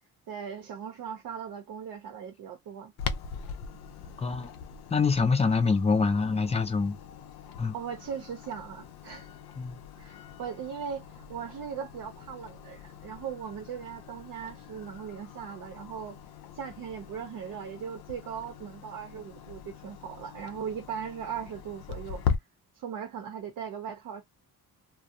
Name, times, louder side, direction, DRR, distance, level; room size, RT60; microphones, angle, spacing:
voice 1, 0.3-2.9 7.7-9.3 10.0-16.2 16.5-22.4 22.7-24.2, right 7 dB, 60° right, 0.6 m, -39 dB
Clock, 3.0-22.4, left 7 dB, 90° left, 0.5 m, -40 dB
voice 2, 4.2-4.5 4.9-7.0 7.6-7.7 9.6-9.8, left 4 dB, 20° left, 0.4 m, -25 dB
2.4 x 2.0 x 2.7 m
cardioid pair, 135°, 36 cm